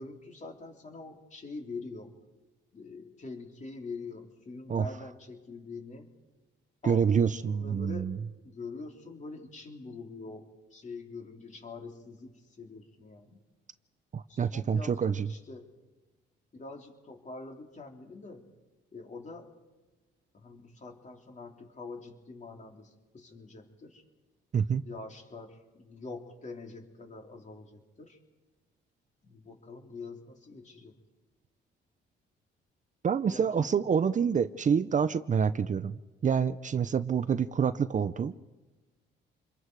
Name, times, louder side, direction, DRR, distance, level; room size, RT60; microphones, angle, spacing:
voice 1, 0.0-2.1 2.7-6.1 6.8-8.1 8.4-13.4 14.3-15.7 16.5-18.5 18.9-19.5 20.3-24.0 24.8-28.2 29.2-31.0 33.2-33.9, left 3 dB, 35° left, 2 dB, 3.7 m, -45 dB
voice 2, 6.8-8.2 14.1-15.3 24.5-24.8 33.0-38.3, right 7 dB, 40° right, 14 dB, 0.7 m, -27 dB
28.0 x 22.5 x 4.8 m, 1.2 s
cardioid pair, 90°, 20 cm